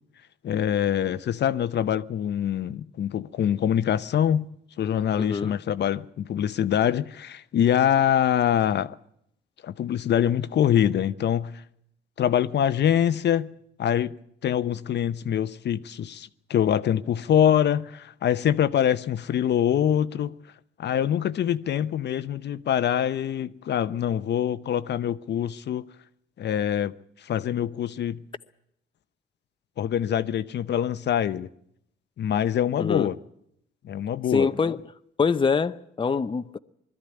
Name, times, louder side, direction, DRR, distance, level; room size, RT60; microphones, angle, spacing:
voice 1, 0.4-4.5 4.8-9.0 9.6-11.6 12.2-13.5 13.8-14.1 14.4-20.3 20.8-25.8 26.4-28.2 29.8-31.5 32.2-33.2 33.8-34.5, left 9 dB, 60° left, 0.8 m, -24 dB
voice 2, 5.2-5.5 32.8-33.1 34.3-34.9 35.2-36.6, left 5 dB, 25° left, 0.7 m, -24 dB
21.0 x 13.5 x 9.8 m
cardioid pair, 90°, 20 cm